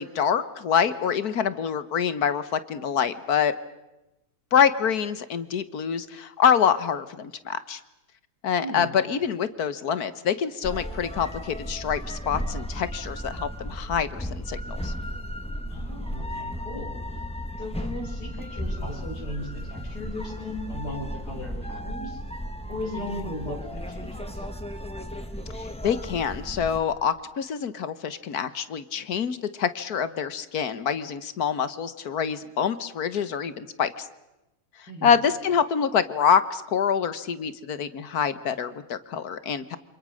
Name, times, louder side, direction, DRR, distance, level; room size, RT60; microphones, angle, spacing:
voice 1, 0.0-3.5 4.5-7.8 8.4-14.9 25.6-34.1 35.0-39.8, left 7 dB, 70° left, 14 dB, 1.7 m, -26 dB
sound 1, 10.6-26.8, equal, 5° left, 1.7 m, -35 dB
voice 2, 15.7-17.0 17.6-22.2 22.7-24.5 34.9-35.1, left 1 dB, 85° left, 2 dB, 6.2 m, -37 dB
28.5 x 26.0 x 6.5 m, 0.97 s
omnidirectional pair, 1.7 m